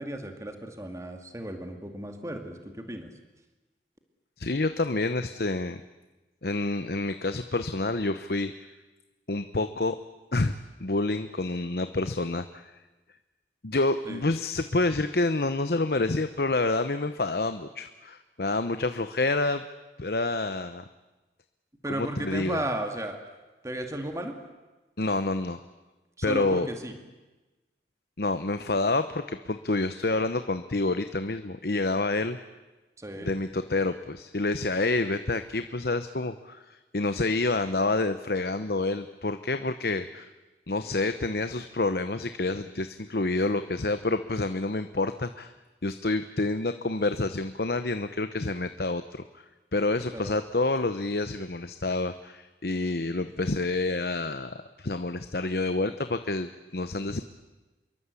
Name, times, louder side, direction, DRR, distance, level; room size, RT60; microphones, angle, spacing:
voice 1, 0.0-3.1 14.1-14.2 21.8-23.2 23.6-24.4 26.2-27.0 33.0-33.3 50.1-50.3, right 1 dB, 15° right, 5 dB, 2.3 m, -34 dB
voice 2, 4.4-5.8 6.4-8.5 9.3-10.0 10.3-10.5 10.8-12.7 13.6-19.6 20.0-20.8 21.9-22.6 25.0-25.6 26.2-26.7 28.2-32.4 33.2-40.3 40.7-45.5 45.8-49.4 49.7-57.2, left 2 dB, 60° left, 10 dB, 1.0 m, -28 dB
27.0 x 23.0 x 8.4 m, 1.1 s
head